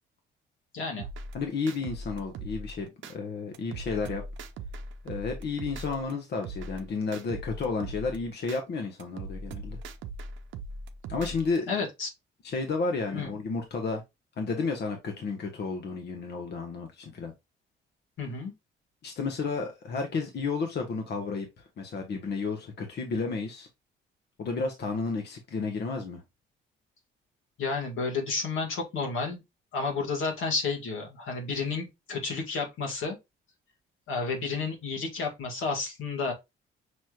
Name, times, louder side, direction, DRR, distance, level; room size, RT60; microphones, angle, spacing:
voice 1, 0.7-1.1 11.7-12.1 13.1-13.4 18.2-18.5 27.6-29.4 29.7-33.2 34.1-36.3, left 4 dB, 85° left, 1.8 m, -31 dB
sound 1, 1.0-3.1 3.5-6.1 6.4-8.6 9.0-11.6, right 2 dB, 75° right, 0.6 m, -40 dB
voice 2, 1.3-4.2 5.0-9.8 11.1-11.8 12.4-14.0 14.4-17.3 19.0-23.7 24.4-26.2, left 4 dB, 55° left, 1.0 m, -32 dB
6.1 x 3.1 x 2.4 m
cardioid pair, 90°, 20 cm